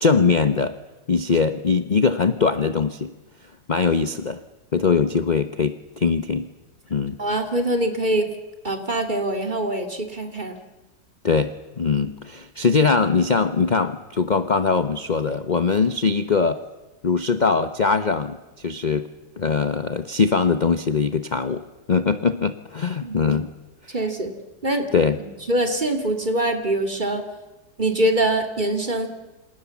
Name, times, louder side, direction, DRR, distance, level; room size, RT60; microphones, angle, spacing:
voice 1, 0.0-0.7 1.1-3.1 3.7-4.4 4.7-6.5 6.9-7.2 11.2-16.6 17.0-19.1 19.4-21.6 21.9-23.5 24.9-25.2, left 5 dB, 35° left, 10 dB, 0.9 m, -21 dB
voice 2, 7.2-8.3 8.6-10.6 23.0-23.3 23.9-24.3 24.6-24.9 25.2-27.3 27.8-29.1, right 1 dB, 30° right, 5 dB, 3.1 m, -24 dB
28.5 x 27.0 x 7.3 m, 1.1 s
omnidirectional pair, 1.7 m